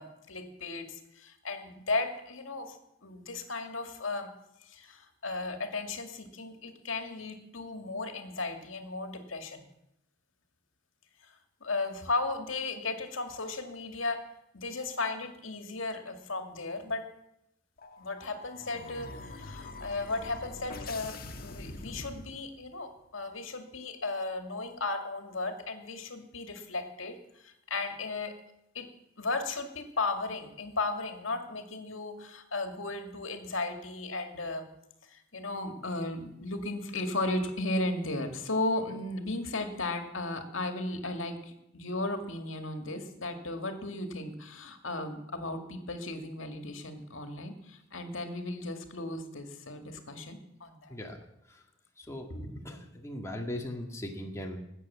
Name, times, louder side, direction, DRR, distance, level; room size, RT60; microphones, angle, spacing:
voice 1, 0.0-4.3 4.7-9.6 11.3-11.4 11.6-14.3 14.5-17.1 18.0-28.4 28.7-28.9 29.2-34.7 35.1-51.0 52.3-52.5, left 2 dB, 75° left, 6 dB, 2.2 m, -35 dB
sound 1, 17.8-22.8, left 2 dB, 50° left, 1.5 m, -44 dB
voice 2, 50.9-51.6 52.0-52.3 52.6-54.6, left 1 dB, 15° left, 1 dB, 2.0 m, -39 dB
19.5 x 8.6 x 7.4 m, 0.83 s
head